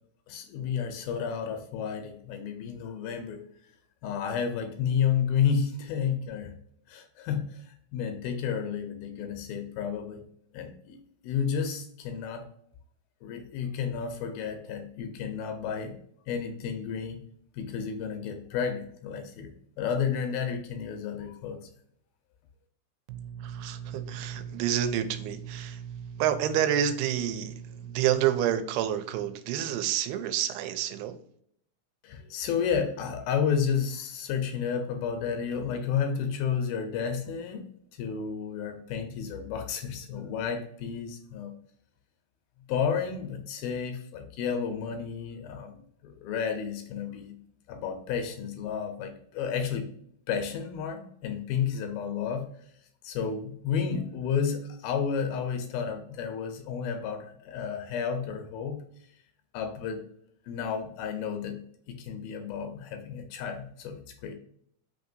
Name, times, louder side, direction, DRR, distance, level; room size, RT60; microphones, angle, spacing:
voice 1, 0.3-3.5 4.0-6.5 6.9-10.2 10.5-12.5 13.2-16.0 16.3-17.2 17.5-19.5 19.8-21.7 32.0-37.7 38.0-41.5 42.7-47.4 47.7-49.9 50.3-52.5 53.0-58.8 59.5-60.1 60.5-64.4, left 7 dB, 80° left, 6 dB, 2.3 m, -31 dB
voice 2, 23.1-31.1, right 10 dB, 90° right, 9 dB, 2.6 m, -29 dB
5.8 x 2.8 x 2.5 m, 0.67 s
omnidirectional pair, 4.5 m